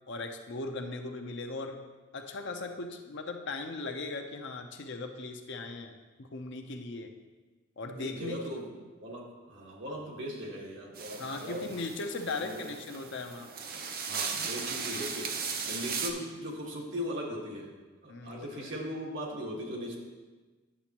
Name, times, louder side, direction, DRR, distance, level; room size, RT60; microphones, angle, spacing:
voice 1, 0.1-1.8 2.1-7.1 7.8-8.6 11.2-13.5 18.1-18.7, left 3 dB, 65° left, 5 dB, 0.7 m, -38 dB
voice 2, 7.9-11.7 12.2-12.7 14.1-17.7 18.0-20.0, equal, 65° right, -2 dB, 1.5 m, -39 dB
sound 1, 10.9-16.1, right 5 dB, 50° right, 0.7 m, -37 dB
10.0 x 7.0 x 3.0 m, 1.3 s
head